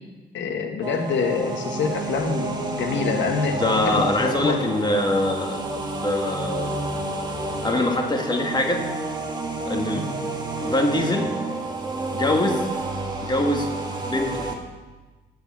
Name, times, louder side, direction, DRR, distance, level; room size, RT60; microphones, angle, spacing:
voice 1, 0.3-3.6 3.9-4.6 10.1-10.2, left 5 dB, 70° left, 4 dB, 1.5 m, -26 dB
sound 1, 0.8-14.5, right 2 dB, 20° right, 1.6 m, -30 dB
voice 2, 3.5-6.7 7.6-8.8 9.7-10.0 10.6-11.3 11.8-12.6 13.2-13.7 14.0-14.5, left 1 dB, 20° left, 2 dB, 1.7 m, -24 dB
9.0 x 6.7 x 7.5 m, 1.2 s
cardioid pair, 90°, 20 cm